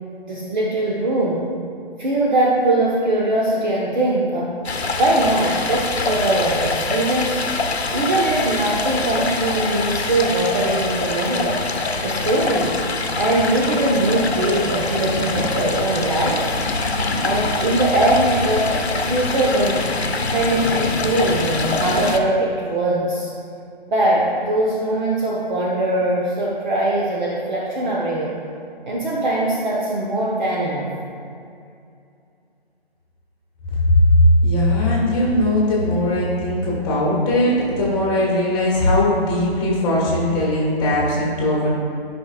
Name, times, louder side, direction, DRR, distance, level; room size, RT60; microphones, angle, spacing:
voice 1, 0.3-1.5 2.0-4.5 4.9-7.4 7.9-11.5 12.0-12.8 13.2-16.5 17.2-19.8 20.3-23.3 23.9-28.3 28.9-30.9, right 1 dB, 45° right, -4 dB, 1.2 m, -21 dB
Stream, 4.6-22.2, left 3 dB, 85° left, 0.9 m, -24 dB
voice 2, 34.1-41.7, left 1 dB, 15° left, -5 dB, 1.4 m, -19 dB
13.0 x 5.4 x 2.4 m, 2.5 s
figure-of-eight pair, 155°, 31 cm